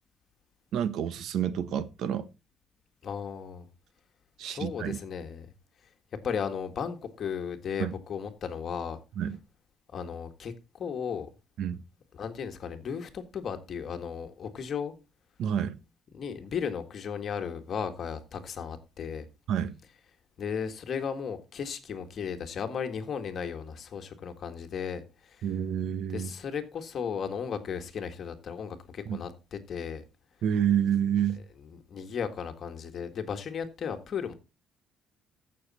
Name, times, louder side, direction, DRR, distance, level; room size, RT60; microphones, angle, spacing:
voice 1, 0.7-2.3 4.4-5.0 7.8-7.9 9.2-9.4 11.6-11.8 15.4-15.8 19.5-19.7 25.4-26.3 29.1-29.2 30.4-31.4, right 9 dB, 65° right, 0.9 m, -28 dB
voice 2, 3.0-3.7 4.5-5.5 6.2-9.0 9.9-11.3 12.1-14.9 16.1-19.3 20.4-25.5 26.1-30.0 31.6-34.3, left 7 dB, 40° left, 1.7 m, -35 dB
15.0 x 6.7 x 4.2 m
cardioid pair, 150°, 0 cm